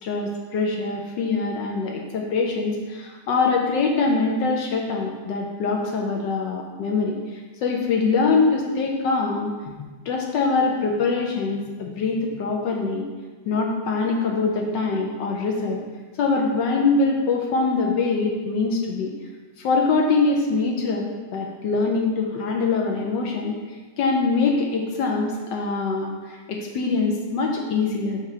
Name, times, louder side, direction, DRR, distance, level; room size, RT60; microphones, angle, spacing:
voice 1, 0.0-9.7 10.1-13.1 13.5-15.8 16.2-19.1 19.6-23.5 24.0-28.2, left 4 dB, 70° left, 1 dB, 1.1 m, -23 dB
5.8 x 3.0 x 5.5 m, 1.4 s
omnidirectional pair, 2.3 m